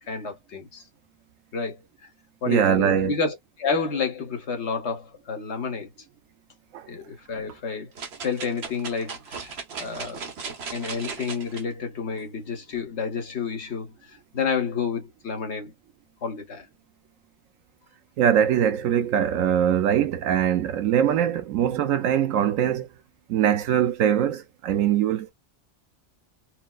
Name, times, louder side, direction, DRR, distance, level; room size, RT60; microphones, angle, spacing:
voice 1, 0.1-0.8 1.5-1.8 2.4-5.9 6.9-7.9 8.2-10.3 10.7-15.7 16.2-16.7, left 5 dB, 60° left, 1.3 m, -30 dB
voice 2, 2.5-3.2 6.7-6.9 18.2-22.9 23.3-25.3, right 9 dB, 85° right, 1.0 m, -22 dB
sound 1, 8.0-11.6 12.2-12.3, right 5 dB, 55° right, 1.1 m, -36 dB
4.4 x 2.0 x 2.3 m
omnidirectional pair, 1.3 m